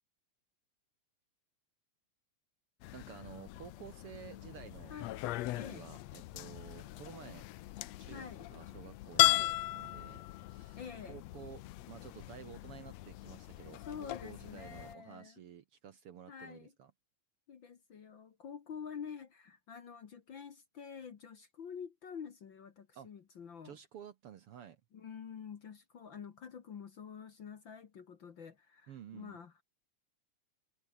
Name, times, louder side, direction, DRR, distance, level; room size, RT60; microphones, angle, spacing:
sound 1, 2.8-14.9, left 16 dB, 75° left, 1.7 m, -37 dB
voice 1, 2.9-4.9 5.5-7.4 8.0-9.5 9.7-10.2 10.5-10.8 11.1-11.6 11.9-16.9 22.9-23.1 23.6-24.8 28.9-29.4, right 9 dB, 60° right, 1.7 m, -52 dB
voice 2, 4.9-5.2 5.6-5.8 8.1-8.4 9.2-9.6 10.8-11.2 13.8-15.4 16.3-16.7 17.5-23.8 24.9-29.6, left 7 dB, 50° left, 1.8 m, -48 dB
omnidirectional pair, 3.5 m